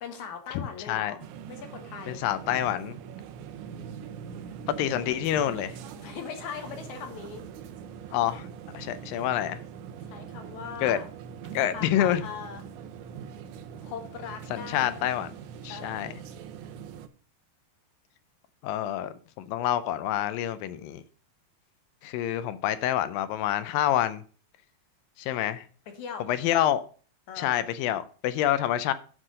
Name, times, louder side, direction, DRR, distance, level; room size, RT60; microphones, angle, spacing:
voice 1, 0.0-1.2 1.5-2.2 6.0-7.4 10.1-11.1 11.7-12.6 13.8-15.0 15.7-16.1 25.9-26.3 27.3-27.5, left 7 dB, 60° left, 2.4 m, -40 dB
voice 2, 0.6-1.2 2.1-3.0 4.8-5.7 8.1-8.5 8.7-9.6 10.8-11.0 11.5-12.2 14.5-15.3 15.6-16.1 18.6-21.0 22.0-24.2 25.2-25.6 26.3-26.8 27.4-28.9, left 12 dB, 80° left, 2.1 m, -27 dB
sound 1, 1.2-17.1, right 7 dB, 85° right, 1.7 m, -42 dB
9.8 x 4.6 x 6.4 m
omnidirectional pair, 4.4 m